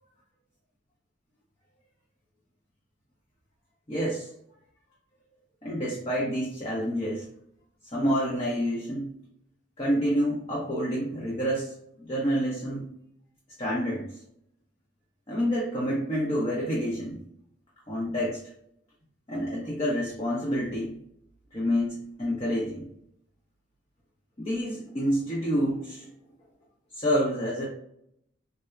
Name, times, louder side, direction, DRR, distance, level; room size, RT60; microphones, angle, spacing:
voice 1, 3.9-4.3 5.6-7.3 7.9-9.1 9.8-12.9 13.6-14.1 15.3-17.2 17.9-18.4 19.3-20.9 21.5-22.9 24.4-26.1 26.9-27.7, equal, 30° left, -5 dB, 0.6 m, -28 dB
4.2 x 2.0 x 2.3 m, 0.74 s
head